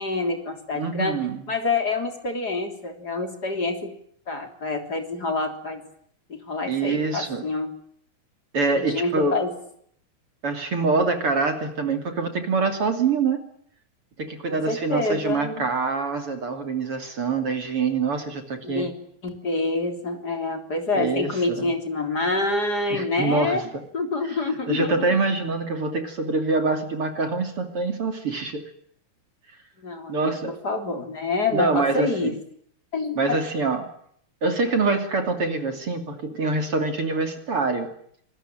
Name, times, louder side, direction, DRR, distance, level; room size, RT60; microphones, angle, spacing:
voice 1, 0.0-1.2 1.5-3.9 4.3-5.8 6.3-7.7 8.8-9.5 14.5-15.6 18.6-18.9 19.2-23.6 23.9-25.2 29.8-30.3 30.6-32.3 32.9-33.4, left 3 dB, 25° left, 5 dB, 3.7 m, -27 dB
voice 2, 0.7-1.4 6.7-7.4 8.5-9.4 10.4-13.4 14.2-18.9 20.9-21.7 22.9-23.8 24.2-24.4 24.7-28.6 30.1-30.6 31.5-32.4 33.1-33.9 34.4-37.9, right 3 dB, 40° right, 6 dB, 3.3 m, -25 dB
27.0 x 20.5 x 9.0 m, 0.66 s
omnidirectional pair, 4.2 m